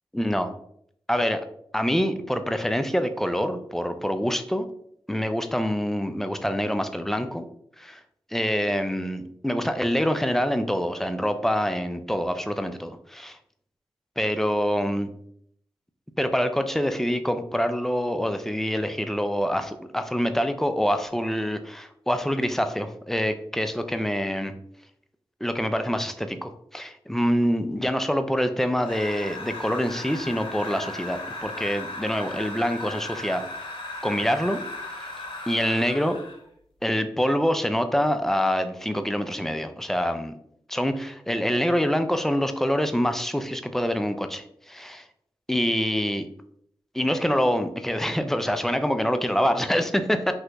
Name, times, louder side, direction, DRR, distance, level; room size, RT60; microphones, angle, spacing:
voice 1, 0.1-0.5 1.1-1.4 1.7-4.7 5.1-7.5 7.8-8.0 8.3-13.4 14.2-15.1 16.2-24.5 25.4-33.4 34.0-34.6 35.5-36.2 36.8-40.3 40.7-45.0 45.5-46.3 46.9-50.3, equal, 5° left, 8 dB, 0.4 m, -25 dB
sound 1, 28.8-36.5, left 2 dB, 65° left, 1.1 m, -37 dB
2.8 x 2.6 x 3.3 m, 0.69 s
cardioid pair, 40°, 10 cm